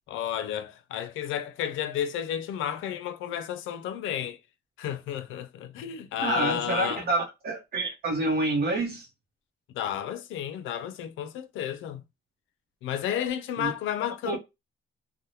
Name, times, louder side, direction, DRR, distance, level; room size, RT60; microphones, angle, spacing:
voice 1, 0.1-4.4 4.8-7.0 9.7-12.0 12.8-14.4, left 10 dB, 80° left, 0.4 m, -32 dB
voice 2, 6.2-9.1 13.6-13.7 14.2-14.4, right 2 dB, 50° right, 0.7 m, -27 dB
3.0 x 2.1 x 2.6 m
cardioid pair, 90°, 20 cm